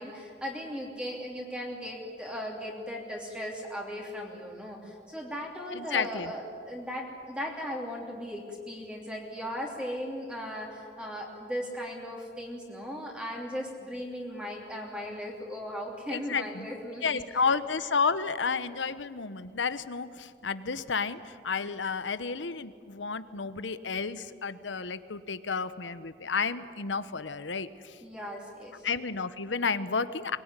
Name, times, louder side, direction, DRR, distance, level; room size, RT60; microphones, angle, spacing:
voice 1, 0.0-17.4 28.0-28.8, equal, 5° right, -1 dB, 3.0 m, -37 dB
voice 2, 5.7-6.3 16.1-16.7 17.0-28.0 28.8-30.4, left 5 dB, 85° left, 14 dB, 1.0 m, -31 dB
23.5 x 21.0 x 9.8 m, 2.3 s
head